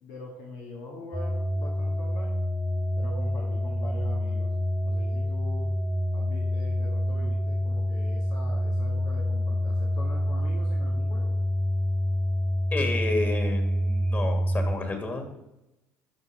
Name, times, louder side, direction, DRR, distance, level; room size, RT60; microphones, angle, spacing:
voice 1, 0.0-2.4 3.0-4.5 4.8-5.7 6.1-11.4, left 2 dB, 70° left, -2 dB, 2.0 m, -43 dB
sound 1, 1.1-14.8, equal, 5° right, 0.6 m, -27 dB
voice 2, 12.7-15.4, left 2 dB, 30° left, 4 dB, 2.6 m, -30 dB
12.0 x 5.1 x 5.2 m, 0.93 s
hypercardioid pair, 65°, 7 cm